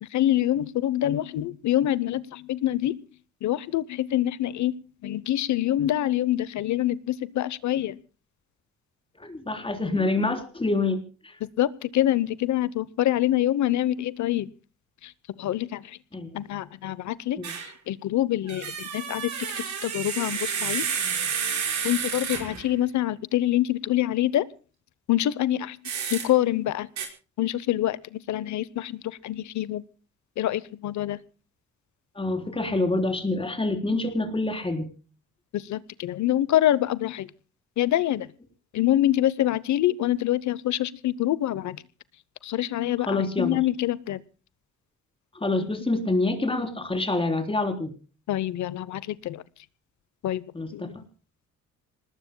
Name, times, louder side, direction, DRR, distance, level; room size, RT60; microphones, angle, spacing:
voice 1, 0.0-3.0 3.4-8.0 11.6-14.5 15.0-15.1 15.4-16.0 16.3-19.3 19.6-20.9 21.8-24.5 25.1-26.9 27.4-29.8 30.4-31.2 35.5-37.3 37.8-38.3 38.7-41.8 42.4-44.2 45.6-45.7 48.3-49.4 50.2-50.4 50.7-51.0, left 13 dB, 70° left, 19 dB, 0.9 m, -26 dB
voice 2, 9.2-11.4 16.1-16.4 17.4-17.5 32.2-34.9 43.1-43.6 45.4-47.9 50.5-51.0, left 2 dB, 20° left, 5 dB, 3.8 m, -27 dB
sound 1, 17.4-17.7 18.5-22.7 25.8-26.3 27.0-27.1, right 7 dB, 70° right, 5.1 m, -30 dB
27.0 x 20.0 x 2.2 m, 0.36 s
cardioid pair, 90°, 30 cm